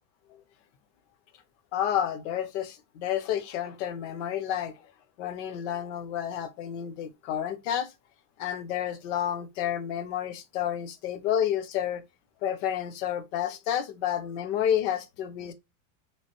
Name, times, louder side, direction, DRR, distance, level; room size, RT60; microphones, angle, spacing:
voice 1, 1.7-4.7 5.2-7.9 8.4-12.0 12.4-15.5, left 10 dB, 45° left, 0.5 m, -30 dB
3.2 x 2.4 x 2.8 m
supercardioid pair, 170°, 49 cm